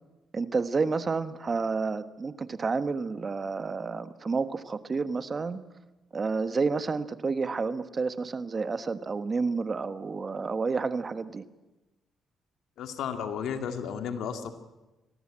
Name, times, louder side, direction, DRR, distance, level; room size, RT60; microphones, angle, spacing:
voice 1, 0.3-5.6 6.1-11.4, right 4 dB, 35° right, 12 dB, 1.3 m, -30 dB
voice 2, 12.8-14.5, left 7 dB, 80° left, 7 dB, 2.1 m, -33 dB
23.5 x 17.5 x 8.8 m, 1.1 s
cardioid pair, 90°, 0 cm